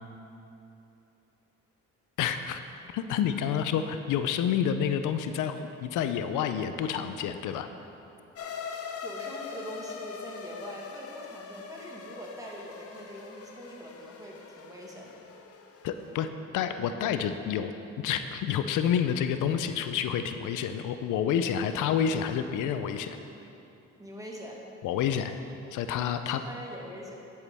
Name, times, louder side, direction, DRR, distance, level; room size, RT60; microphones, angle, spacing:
voice 1, 2.2-2.6 2.9-7.7 15.8-23.2 24.8-25.3 25.7-26.4, left 8 dB, 80° left, 9 dB, 0.5 m, -29 dB
sound 1, 8.4-16.3, left 5 dB, 50° left, 0.8 m, -42 dB
voice 2, 9.0-15.2 24.0-24.6 26.3-27.2, equal, 10° right, -2 dB, 1.6 m, -43 dB
10.0 x 8.1 x 3.4 m, 2.8 s
cardioid pair, 90°, 30 cm